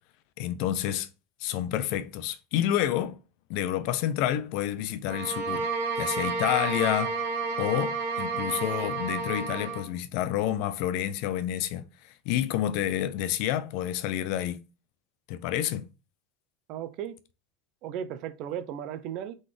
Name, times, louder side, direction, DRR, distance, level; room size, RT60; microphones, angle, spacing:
voice 1, 0.4-1.1 1.4-3.2 3.5-5.7 6.0-7.2 7.6-14.6 15.3-15.9, left 12 dB, 60° left, 0.5 m, -29 dB
sound 1, 5.0-9.9, right 4 dB, 70° right, 1.6 m, -31 dB
voice 2, 16.7-17.2 17.8-19.4, right 9 dB, 50° right, 0.5 m, -35 dB
3.9 x 3.8 x 3.2 m
supercardioid pair, 145°, 0 cm